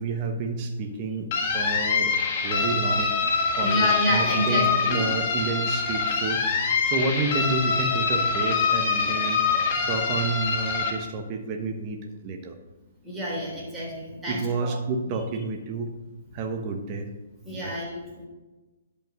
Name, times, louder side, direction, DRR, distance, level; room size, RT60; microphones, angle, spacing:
voice 1, 0.0-2.1 2.4-3.1 3.6-9.4 9.9-12.6 14.3-16.0 16.3-17.1 17.5-17.8, right 3 dB, 35° right, 4 dB, 1.1 m, -30 dB
sound 1, 1.3-10.9, left 5 dB, 40° left, 1.6 m, -25 dB
voice 2, 3.6-5.0 13.0-14.7 17.4-18.3, equal, 10° right, -5 dB, 3.5 m, -29 dB
10.5 x 5.3 x 5.3 m, 1.2 s
figure-of-eight pair, 130°, 0 cm